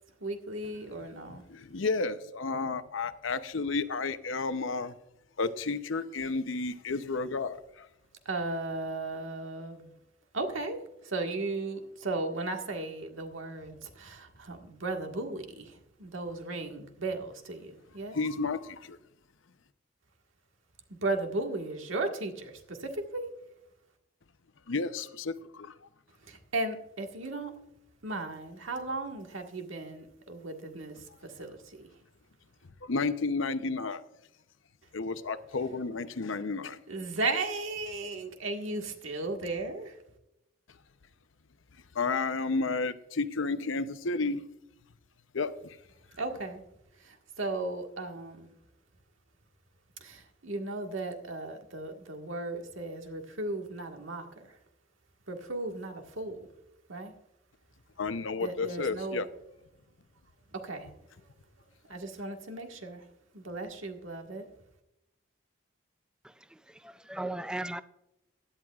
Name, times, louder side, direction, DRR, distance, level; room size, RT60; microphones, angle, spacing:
voice 1, 0.2-1.4 8.3-9.9 10.3-10.8 11.0-18.2 21.0-23.2 26.3-27.5 28.0-31.0 31.2-31.8 36.9-40.0 46.2-46.6 47.0-48.5 50.0-54.5 55.3-56.4 56.9-57.1 58.4-59.2 60.5-60.9 61.9-63.0 63.3-64.5, right 2 dB, 85° right, 4 dB, 1.7 m, -36 dB
voice 2, 1.3-4.9 5.4-7.9 18.1-19.0 24.7-25.7 32.8-34.0 34.9-36.8 41.9-44.5 45.3-45.8 58.0-59.3, left 3 dB, 80° left, 11 dB, 0.7 m, -32 dB
voice 3, 66.2-67.8, right 1 dB, 5° right, 12 dB, 0.3 m, -38 dB
16.5 x 11.0 x 2.4 m, 0.87 s
head